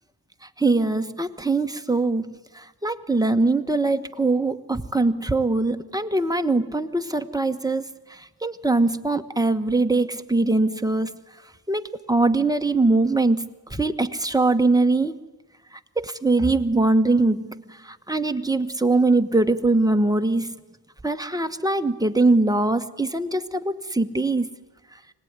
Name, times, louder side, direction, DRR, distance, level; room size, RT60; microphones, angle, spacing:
voice 1, 0.6-7.8 8.1-11.2 11.7-15.2 16.0-20.6 21.0-24.5, right 2 dB, 10° right, 7 dB, 1.2 m, -22 dB
25.0 x 19.0 x 9.6 m, 1.2 s
wide cardioid pair, 90°, 42 cm